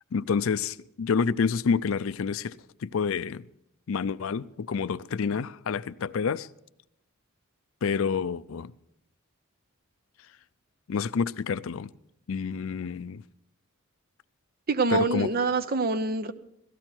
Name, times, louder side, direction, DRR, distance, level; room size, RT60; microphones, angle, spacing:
voice 1, 0.1-3.5 3.9-6.5 7.8-8.7 10.9-11.9 12.3-13.2 14.9-15.3, left 5 dB, 65° left, 0.4 m, -28 dB
voice 2, 14.7-16.3, right 3 dB, 45° right, 0.7 m, -25 dB
17.0 x 14.5 x 4.5 m
head